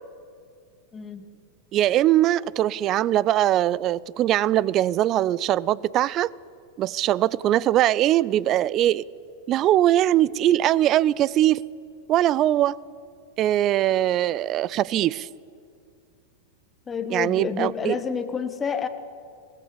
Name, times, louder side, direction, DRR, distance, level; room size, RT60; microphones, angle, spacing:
voice 1, 0.9-1.3 16.9-18.9, left 6 dB, 20° left, 9 dB, 1.5 m, -29 dB
voice 2, 1.7-6.3 6.8-9.0 9.5-11.6 12.1-12.8 13.4-15.3 17.1-18.0, right 13 dB, 35° right, 24 dB, 0.5 m, -21 dB
23.5 x 18.5 x 7.1 m, 2.3 s
figure-of-eight pair, 90°, 0 cm